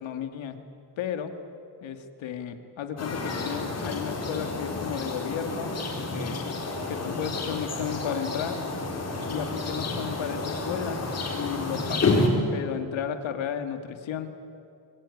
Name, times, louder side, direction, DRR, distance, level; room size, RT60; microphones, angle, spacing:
voice 1, 0.0-0.6 1.0-1.3 1.8-5.8 6.1-6.6 6.9-8.6 9.3-11.0 11.4-14.3, left 8 dB, 70° left, 7 dB, 2.2 m, -33 dB
sound 1, 3.0-12.3, left 3 dB, 30° left, 4.5 m, -30 dB
25.5 x 22.5 x 9.8 m, 2.5 s
cardioid pair, 180°, 48 cm